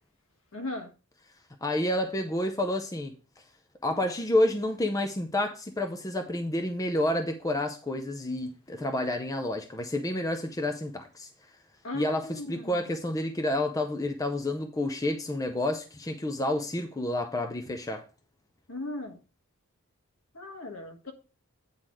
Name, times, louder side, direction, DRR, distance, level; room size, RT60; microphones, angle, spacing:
voice 1, 0.5-0.9 11.8-13.0 18.7-19.2 20.3-21.1, left 2 dB, 65° left, 1.6 m, -38 dB
voice 2, 1.6-3.1 3.8-11.3 11.9-18.0, left 1 dB, 15° left, 0.5 m, -29 dB
8.9 x 4.0 x 4.8 m
head